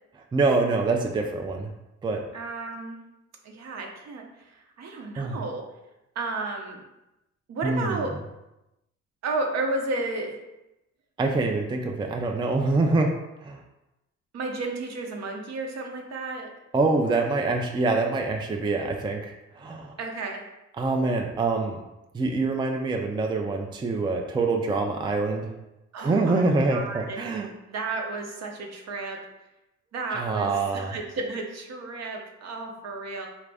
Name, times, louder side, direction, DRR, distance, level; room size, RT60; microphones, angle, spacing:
voice 1, 0.3-1.7 2.0-2.2 5.2-5.4 7.6-8.0 11.2-13.1 13.4-13.6 16.7-20.0 20.8-21.8 22.1-25.5 26.0-27.5 30.1-30.9, right 3 dB, 15° right, 3 dB, 0.4 m, -25 dB
voice 2, 2.3-3.0 3.4-5.6 6.1-6.8 7.5-8.2 9.2-10.4 14.3-16.5 20.0-20.4 25.9-27.2 27.7-29.2 29.9-33.3, right 3 dB, 60° right, 2 dB, 0.8 m, -32 dB
4.1 x 2.4 x 3.4 m, 0.94 s
cardioid pair, 90°, 30 cm